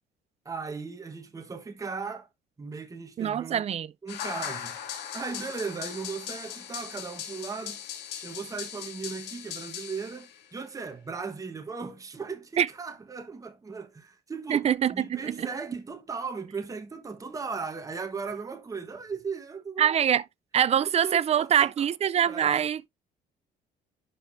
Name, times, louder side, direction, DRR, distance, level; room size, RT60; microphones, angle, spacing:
voice 1, 0.4-2.3 2.6-3.6 4.0-4.8 5.1-7.8 8.2-14.7 14.9-20.0 20.8-21.9 22.3-22.7, right 5 dB, 20° right, 1.3 m, -37 dB
voice 2, 3.2-3.9 12.6-12.7 14.5-15.5 19.8-20.2 20.5-22.9, right 9 dB, 40° right, 0.5 m, -24 dB
sound 1, 4.1-10.5, left 9 dB, 85° left, 2.3 m, -39 dB
11.0 x 5.0 x 2.6 m
cardioid pair, 110°, 17 cm